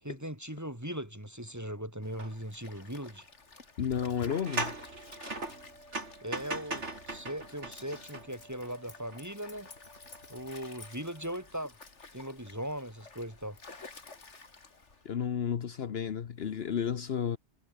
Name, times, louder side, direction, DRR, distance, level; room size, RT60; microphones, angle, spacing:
voice 1, 0.0-3.3 6.2-9.7 10.3-11.8 12.1-13.6, equal, 15° right, 5.1 m, -39 dB
Stream, 2.0-15.1, left 4 dB, 80° left, 2.9 m, -52 dB
sound 1, 2.2-2.3 2.8-2.9 4.2-8.7 9.1-9.2, right 2 dB, 80° right, 4.0 m, -39 dB
voice 2, 3.8-4.7 15.0-17.4, left 8 dB, 60° left, 1.1 m, -32 dB
sound 2, 3.9-11.5, right 1 dB, 65° right, 6.8 m, -58 dB
omnidirectional pair, 1.2 m